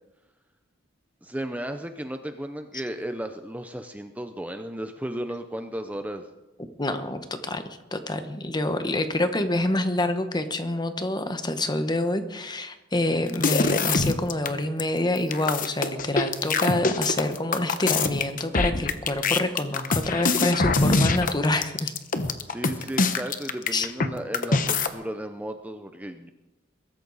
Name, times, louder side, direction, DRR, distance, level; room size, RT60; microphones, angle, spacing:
voice 1, 1.2-6.3 22.5-26.3, right 1 dB, 10° right, 7 dB, 0.6 m, -34 dB
voice 2, 6.8-21.9 23.7-23.9, left 1 dB, 20° left, 9 dB, 1.1 m, -27 dB
sound 1, 13.3-14.5 14.8-14.9 15.2-24.1 24.3-24.9, left 4 dB, 45° left, 1.0 m, -24 dB
22.0 x 13.5 x 4.1 m, 1.0 s
head